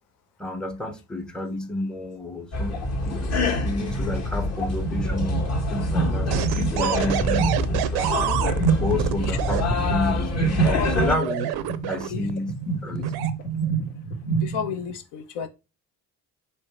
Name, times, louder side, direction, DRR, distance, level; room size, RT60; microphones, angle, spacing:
voice 1, 0.4-3.3 3.6-8.2 8.8-11.5 11.9-12.6 12.8-13.1, left 2 dB, ahead, 0.7 m, -30 dB
sound 1, 2.5-11.2, left 2 dB, 35° left, 0.9 m, -26 dB
sound 2, 4.8-14.9, right 5 dB, 80° left, 0.8 m, -28 dB
sound 3, 6.3-9.6 10.7-12.3 13.0-13.3, right 12 dB, 55° right, 0.5 m, -27 dB
voice 2, 14.4-15.5, left 8 dB, 60° left, 0.6 m, -31 dB
3.5 x 3.2 x 2.9 m
figure-of-eight pair, 45°, 47 cm